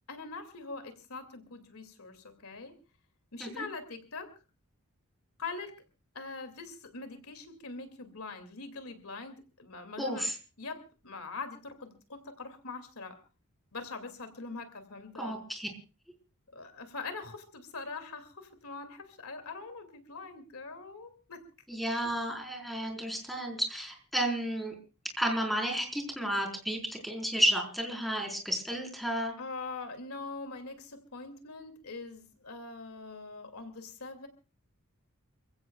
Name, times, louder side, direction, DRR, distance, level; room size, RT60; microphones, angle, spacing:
voice 1, 0.1-2.7 3.3-4.3 5.4-5.7 6.1-10.3 10.6-13.2 13.7-15.4 16.5-21.4 29.4-34.3, left 3 dB, 75° left, 8 dB, 2.5 m, -43 dB
voice 2, 10.0-10.3 15.2-15.7 21.7-24.7 25.2-29.3, right 1 dB, ahead, 2 dB, 4.6 m, -32 dB
28.5 x 16.0 x 2.4 m, 0.33 s
head